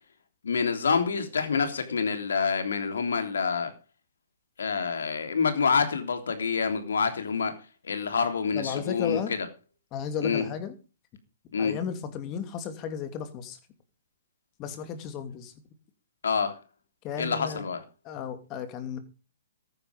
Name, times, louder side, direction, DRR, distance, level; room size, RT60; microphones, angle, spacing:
voice 1, 0.4-3.7 4.6-7.5 7.8-9.2 10.2-10.4 11.5-11.7 16.2-16.5 17.2-17.8, left 5 dB, 75° left, 8 dB, 3.3 m, -27 dB
voice 2, 8.5-9.3 9.9-10.7 11.5-13.6 14.6-15.5 17.0-17.7 18.0-19.0, left 7 dB, 30° left, 9 dB, 2.8 m, -34 dB
14.5 x 11.5 x 5.2 m, 0.34 s
hypercardioid pair, 130°, 0 cm